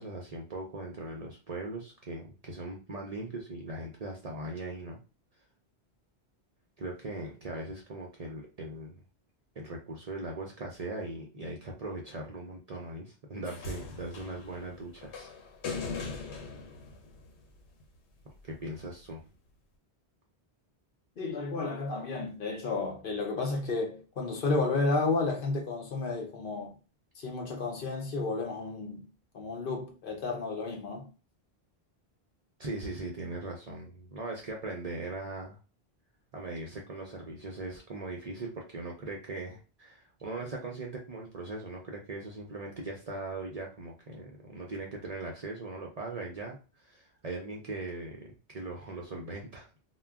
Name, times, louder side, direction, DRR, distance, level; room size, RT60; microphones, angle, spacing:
voice 1, 0.0-5.0 6.8-9.0 9.6-15.3 18.4-19.2 32.6-35.6 36.3-49.7, right 2 dB, 50° right, 0.5 m, -40 dB
sound 1, 13.4-17.8 18.9-19.0, left 4 dB, 85° left, 1.0 m, -40 dB
voice 2, 21.2-26.7 27.2-29.1 29.3-31.1, left 3 dB, 60° left, 0.8 m, -32 dB
2.3 x 2.2 x 3.4 m
omnidirectional pair, 1.1 m